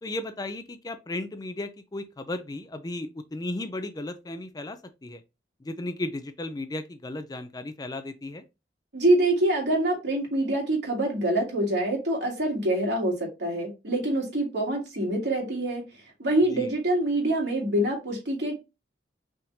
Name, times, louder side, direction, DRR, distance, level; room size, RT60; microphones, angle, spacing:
voice 1, 0.0-5.2 5.6-8.4 16.5-16.7, left 2 dB, 20° left, 0.4 m, -35 dB
voice 2, 8.9-15.8 16.2-18.6, right 1 dB, 65° right, 2.6 m, -25 dB
5.6 x 3.6 x 2.7 m
head